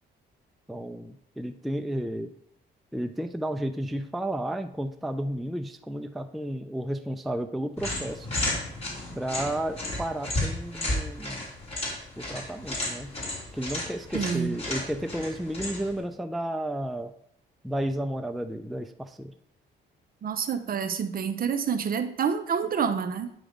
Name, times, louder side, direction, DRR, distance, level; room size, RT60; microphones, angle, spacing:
voice 1, 0.7-2.3 2.9-8.3 9.2-11.5 12.2-13.1 13.5-17.1 17.6-19.3, right 1 dB, ahead, 8 dB, 0.4 m, -32 dB
sound 1, 7.8-16.0, left 1 dB, 30° left, 3.1 m, -33 dB
voice 2, 14.1-14.6 20.2-23.3, right 7 dB, 45° right, 10 dB, 0.6 m, -28 dB
8.9 x 3.2 x 5.0 m, 0.69 s
cardioid pair, 90°, 20 cm